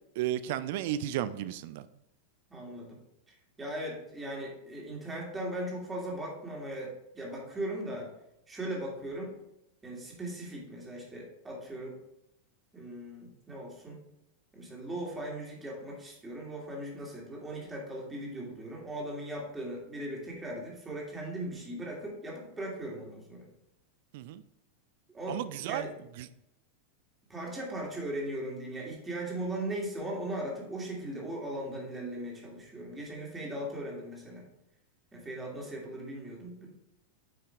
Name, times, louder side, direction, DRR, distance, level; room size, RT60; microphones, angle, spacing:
voice 1, 0.2-1.9 24.1-24.4 25.3-25.9 26.2-26.3, right 12 dB, 50° right, 15 dB, 0.4 m, -33 dB
voice 2, 2.5-3.0 3.3-8.1 8.5-9.4 9.8-12.0 12.7-14.0 14.5-23.5 25.1-25.9 27.3-34.5 35.1-36.7, right 1 dB, 15° right, -2 dB, 2.7 m, -38 dB
9.6 x 5.7 x 3.5 m, 0.82 s
figure-of-eight pair, 90°, 0 cm